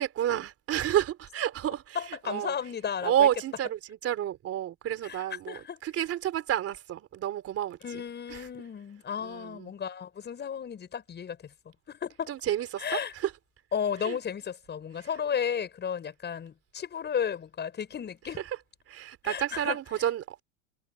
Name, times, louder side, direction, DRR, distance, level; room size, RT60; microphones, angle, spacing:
voice 1, 0.0-2.0 2.2-2.6 3.0-8.0 8.3-8.4 9.2-9.7 12.3-13.3 14.0-14.2 18.9-20.4, right 11 dB, 35° right, 3.6 m, -30 dB
voice 2, 2.0-3.3 5.0-5.8 7.8-11.5 11.9-12.3 12.8-13.1 13.7-18.4 19.2-20.1, left 7 dB, 25° left, 7.2 m, -34 dB
supercardioid pair, 130°, 39 cm